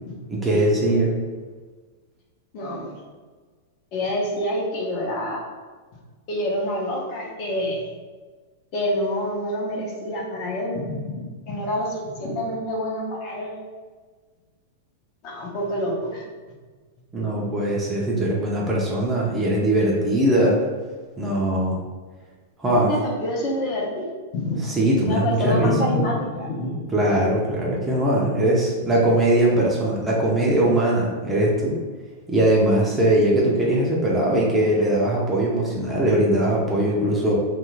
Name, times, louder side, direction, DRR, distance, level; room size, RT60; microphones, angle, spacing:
voice 1, 0.3-1.1 17.1-20.6 21.2-21.8 22.6-22.9 24.6-25.7 26.9-31.8 32.3-37.4, right 1 dB, 10° right, -4 dB, 0.5 m, -20 dB
voice 2, 2.5-2.9 3.9-5.4 6.3-7.9 8.7-13.6 15.2-16.2 22.9-24.6 25.0-26.8 27.1-27.2, left 1 dB, 45° left, -2 dB, 0.7 m, -27 dB
2.4 x 2.4 x 3.0 m, 1.4 s
supercardioid pair, 145°, 0 cm